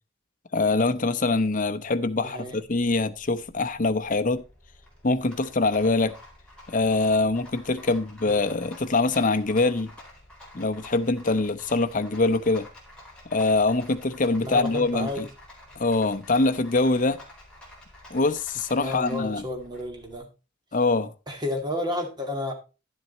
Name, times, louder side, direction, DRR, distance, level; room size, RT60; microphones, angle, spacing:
voice 1, 0.5-4.4 5.0-6.1 6.7-9.9 10.5-12.7 13.3-15.3 15.8-17.2 18.1-19.4 20.7-21.1, left 3 dB, 40° left, 0.8 m, -24 dB
Rattle, 1.7-20.2, left 1 dB, 5° left, 4.2 m, -50 dB
voice 2, 2.1-2.6 8.3-8.4 14.4-15.3 18.7-20.3 21.3-22.5, left 1 dB, 20° right, 2.3 m, -31 dB
11.5 x 7.6 x 4.2 m
head